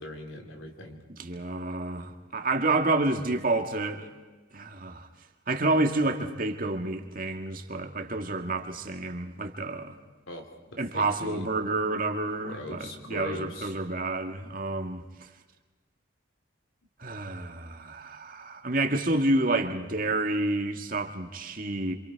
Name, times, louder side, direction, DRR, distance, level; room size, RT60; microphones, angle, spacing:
voice 1, 0.0-1.0 10.3-10.5 10.9-11.4 12.4-13.7, left 1 dB, 90° left, 2 dB, 3.9 m, -40 dB
voice 2, 1.2-4.1 4.5-5.1 5.5-10.0 10.8-15.3 17.0-21.9, right 2 dB, 45° right, 5 dB, 1.8 m, -29 dB
27.5 x 26.5 x 4.7 m, 1.3 s
head